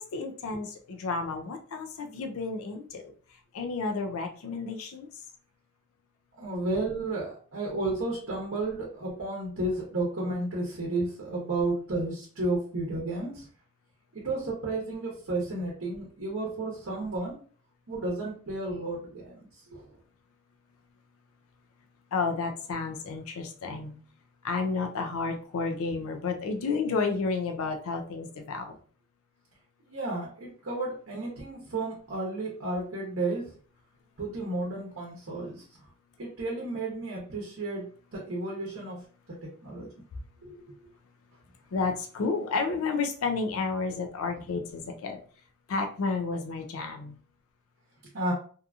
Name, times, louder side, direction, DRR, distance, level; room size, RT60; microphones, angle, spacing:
voice 1, 0.0-5.1 22.1-23.9 24.4-28.7 41.7-45.2 45.7-47.2, left 4 dB, 70° left, 4 dB, 0.4 m, -31 dB
voice 2, 6.4-13.5 14.1-17.4 17.9-19.8 29.9-33.5 34.2-35.6 36.2-39.0 39.3-39.9 40.4-40.6 48.1-48.3, right 2 dB, 60° right, -3 dB, 0.8 m, -32 dB
2.7 x 2.5 x 2.3 m, 0.43 s
head